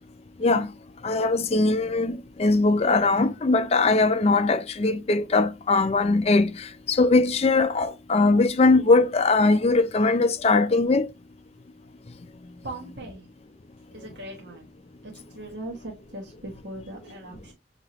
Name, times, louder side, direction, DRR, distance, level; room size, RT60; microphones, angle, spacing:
voice 1, 1.0-11.1, left 3 dB, 35° left, 0.4 m, -21 dB
voice 2, 12.6-13.3 13.9-14.7 15.0-17.5, right 1 dB, 60° right, 1.0 m, -39 dB
6.2 x 2.9 x 2.9 m
head